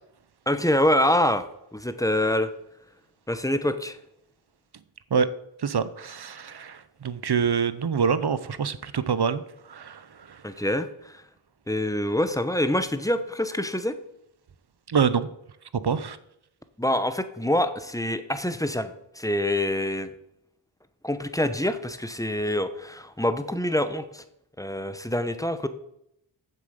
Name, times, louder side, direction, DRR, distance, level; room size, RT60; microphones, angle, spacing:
voice 1, 0.5-1.4 1.7-2.5 3.3-4.0 10.4-11.2 11.7-13.9 16.8-20.1 21.0-24.2 24.6-25.7, left 1 dB, 5° left, 10 dB, 0.9 m, -25 dB
voice 2, 5.6-9.4 9.7-10.4 14.9-15.3 15.8-16.2, right 6 dB, 55° right, 14 dB, 0.8 m, -26 dB
7.6 x 7.4 x 6.7 m, 0.78 s
wide cardioid pair, 55°, 49 cm